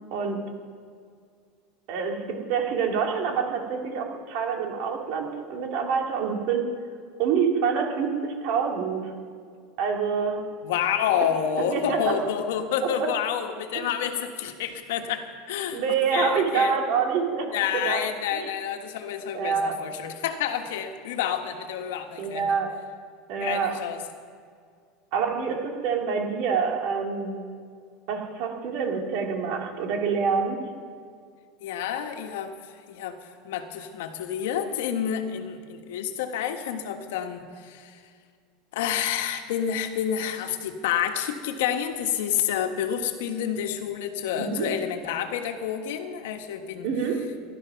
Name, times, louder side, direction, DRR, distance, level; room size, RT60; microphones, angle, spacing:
voice 1, 1.9-6.7 7.2-9.1 9.8-10.4 11.7-12.0 13.0-13.1 15.7-18.0 18.3-18.4 19.3-19.8 22.2-22.7 23.3-23.7 25.1-27.4 28.1-30.6 44.4-44.7 46.8-47.2, right 6 dB, 50° right, 2 dB, 2.3 m, -26 dB
voice 2, 10.6-15.8 16.1-16.8 17.5-22.6 23.4-24.0 31.6-32.5 32.9-38.0 38.7-46.9, left 9 dB, 85° left, 6 dB, 1.5 m, -29 dB
16.5 x 12.5 x 5.8 m, 2.1 s
supercardioid pair, 165°, 0 cm